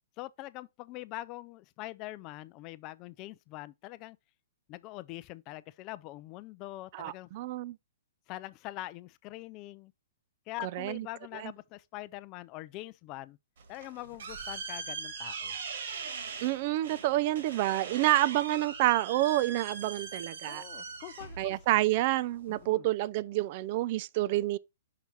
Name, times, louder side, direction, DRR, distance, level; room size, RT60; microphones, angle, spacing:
voice 1, 0.2-4.2 4.7-7.3 8.3-9.9 10.5-13.4 13.7-15.6 20.5-21.6 22.5-22.8, left 17 dB, 35° left, 0.4 m, -43 dB
voice 2, 6.9-7.8 10.6-11.1 11.3-11.5 16.4-20.6 21.4-24.6, right 16 dB, 45° right, 0.4 m, -28 dB
sound 1, 13.6-22.7, right 5 dB, 65° right, 1.6 m, -41 dB
5.9 x 4.5 x 4.0 m
hypercardioid pair, 125°, 0 cm